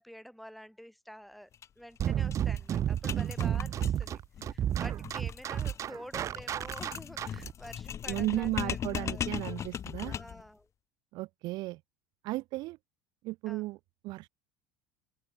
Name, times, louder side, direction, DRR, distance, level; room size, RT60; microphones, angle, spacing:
voice 1, 0.0-1.5 1.8-9.3 10.1-10.7 13.5-13.7, equal, ahead, 3.3 m, -49 dB
sound 1, 1.5-1.7 2.0-2.1 2.3-10.5, left 9 dB, 35° left, 3.3 m, -39 dB
sound 2, 2.0-7.5, right 10 dB, 40° right, 1.1 m, -31 dB
voice 2, 8.1-10.2 11.1-11.8 12.2-12.8 13.2-13.8 14.0-14.3, right 20 dB, 60° right, 1.6 m, -34 dB
open air
supercardioid pair, 110°, 8 cm